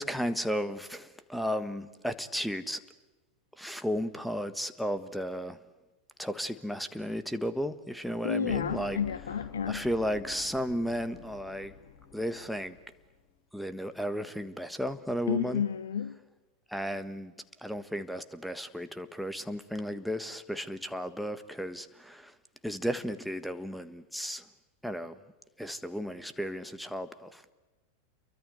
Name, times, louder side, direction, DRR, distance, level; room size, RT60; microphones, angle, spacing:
voice 1, 0.0-2.8 3.6-5.6 6.2-9.0 9.7-11.7 12.1-12.8 13.5-15.6 16.7-17.3 17.6-22.3 22.6-24.5 24.8-25.2 25.6-27.5, equal, ahead, 12 dB, 1.5 m, -34 dB
voice 2, 8.2-9.8 15.3-16.2, left 8 dB, 65° left, 12 dB, 1.0 m, -31 dB
sound 1, 8.4-13.2, left 7 dB, 40° left, 4.2 m, -48 dB
28.5 x 23.5 x 8.2 m, 1.1 s
figure-of-eight pair, 90°, 0 cm